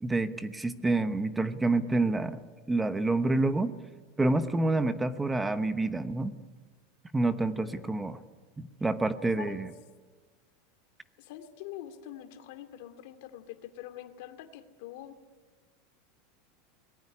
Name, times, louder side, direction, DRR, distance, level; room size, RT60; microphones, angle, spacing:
voice 1, 0.0-2.4 2.7-3.7 4.2-6.3 7.1-8.2 8.6-9.7, right 2 dB, 5° right, 11 dB, 1.0 m, -28 dB
voice 2, 11.2-15.2, left 12 dB, 55° left, 8 dB, 2.5 m, -44 dB
25.5 x 20.0 x 9.8 m, 1.4 s
supercardioid pair, 175°, 0 cm